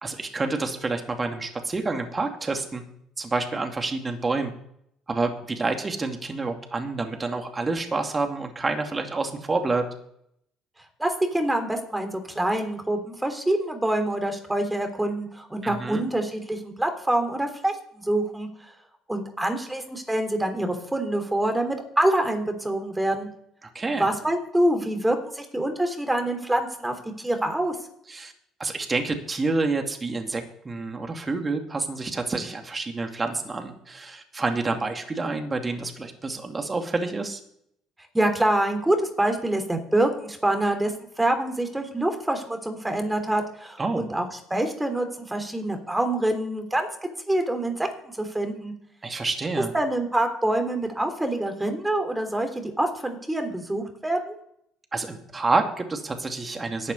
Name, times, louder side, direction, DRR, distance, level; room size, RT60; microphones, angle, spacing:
voice 1, 0.0-2.8 3.2-4.5 5.1-9.8 15.6-16.0 23.7-24.1 28.1-28.3 28.6-37.4 43.8-44.0 49.0-49.7 54.9-56.9, right 3 dB, 25° right, 4 dB, 2.6 m, -28 dB
voice 2, 11.0-18.5 19.1-23.3 24.0-27.7 38.1-40.9 41.2-44.2 44.5-46.9 47.3-47.9 48.2-48.7 49.7-54.3, right 1 dB, 10° right, 5 dB, 3.4 m, -26 dB
12.5 x 7.2 x 9.5 m, 0.72 s
hypercardioid pair, 55°, 0 cm